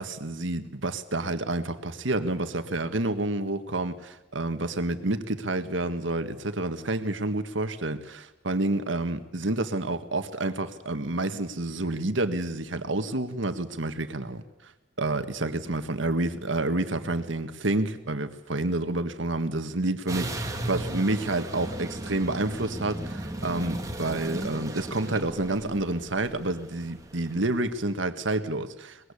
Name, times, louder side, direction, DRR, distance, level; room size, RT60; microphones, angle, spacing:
voice 1, 0.0-14.4 15.0-29.1, right 2 dB, 85° right, 1.7 m, -29 dB
sound 1, 20.1-27.4, right 1 dB, 20° right, 2.4 m, -35 dB
23.0 x 21.0 x 8.5 m
head